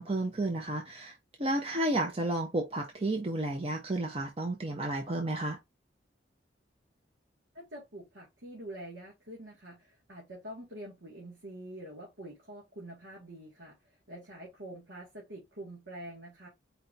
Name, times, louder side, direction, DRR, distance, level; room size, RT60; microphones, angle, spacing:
voice 1, 0.0-5.6, right 1 dB, 35° right, 0.8 m, -32 dB
voice 2, 7.5-16.5, right 1 dB, 85° right, 1.9 m, -46 dB
4.5 x 2.7 x 3.9 m
head